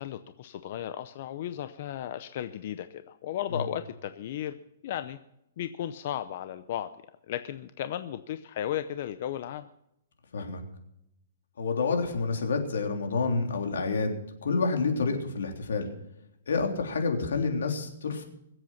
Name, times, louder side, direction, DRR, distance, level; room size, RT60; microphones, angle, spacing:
voice 1, 0.0-4.6 4.8-5.2 5.6-6.9 7.3-9.7 15.1-15.2, left 11 dB, 45° left, 11 dB, 0.6 m, -35 dB
voice 2, 11.6-15.9 16.5-18.2, left 4 dB, 90° left, 3 dB, 3.3 m, -28 dB
22.0 x 8.1 x 5.8 m, 0.81 s
hypercardioid pair, 165°, 0 cm